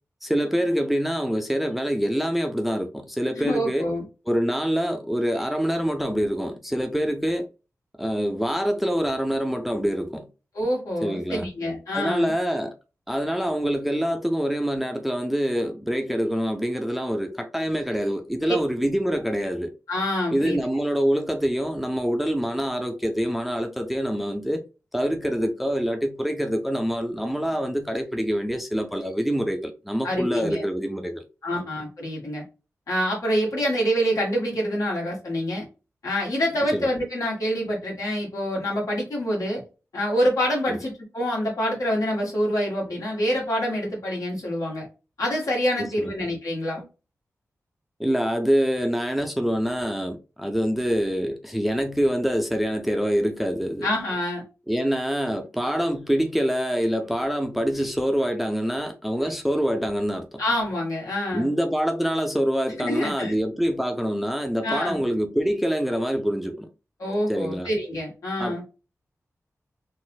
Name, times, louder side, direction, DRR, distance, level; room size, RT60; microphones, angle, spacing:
voice 1, 0.2-3.9 4.3-7.5 8.0-10.3 11.0-11.5 11.9-12.7 13.1-19.7 20.3-24.6 24.9-31.2 31.5-31.6 36.7-36.9 40.7-40.8 45.8-46.1 48.0-53.9 54.7-60.4 61.3-66.7 67.3-67.7 68.4-68.6, equal, ahead, 0.4 m, -25 dB
voice 2, 3.4-4.0 10.5-12.3 18.5-18.6 19.9-20.6 30.0-30.6 31.4-32.4 32.9-35.7 36.0-39.6 39.9-44.9 45.2-46.8 53.8-54.4 60.4-61.5 62.8-63.4 64.6-65.0 67.0-68.6, equal, 80° left, 1.8 m, -26 dB
4.1 x 2.5 x 2.3 m
wide cardioid pair, 125°, 6 cm